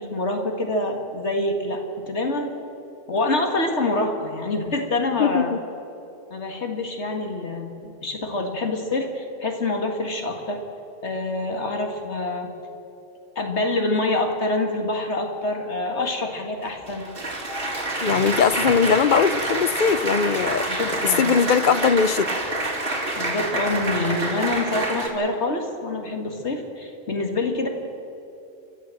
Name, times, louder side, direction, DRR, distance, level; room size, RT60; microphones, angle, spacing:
voice 1, 0.0-2.5 3.1-5.5 6.3-10.6 11.0-12.5 13.4-17.1 20.7-21.2 23.2-27.7, left 2 dB, 75° left, 3 dB, 2.1 m, -26 dB
voice 2, 5.2-5.6 18.0-20.6 21.2-22.4, left 6 dB, 50° left, 14 dB, 0.8 m, -20 dB
Applause, 16.6-25.1, right 2 dB, 55° right, 3.1 m, -27 dB
30.0 x 12.5 x 7.6 m, 2.9 s
omnidirectional pair, 1.2 m